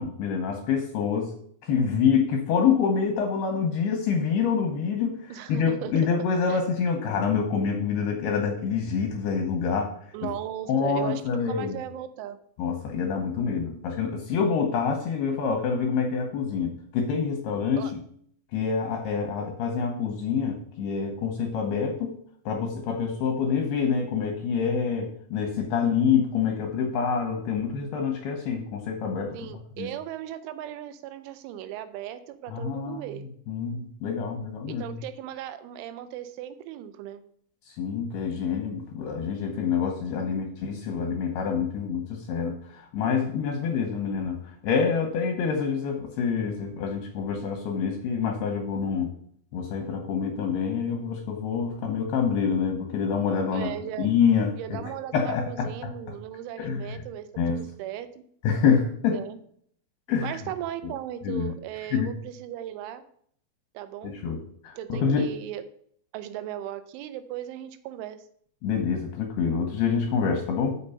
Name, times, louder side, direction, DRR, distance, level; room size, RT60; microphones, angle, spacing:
voice 1, 0.0-1.3 1.6-9.9 10.7-11.8 12.6-18.0 18.5-22.2 22.5-29.9 32.5-33.2 33.5-35.0 37.8-44.4 44.6-49.1 49.5-53.7 54.0-54.8 55.1-55.9 56.6-57.0 57.4-57.6 58.4-59.2 60.1-60.4 61.2-61.5 61.9-62.1 64.2-64.4 64.6-65.3 68.6-70.8, left 6 dB, 75° left, 3 dB, 2.5 m, -26 dB
voice 2, 5.3-5.9 6.5-6.6 10.1-12.4 17.8-17.9 29.3-33.3 34.7-37.2 40.3-40.5 53.5-54.1 54.5-57.3 57.6-58.2 59.1-59.4 60.2-63.0 63.7-64.2 64.8-65.6 66.1-68.2, right 11 dB, 85° right, 11 dB, 3.1 m, -37 dB
6.9 x 5.9 x 5.5 m, 0.63 s
omnidirectional pair, 5.5 m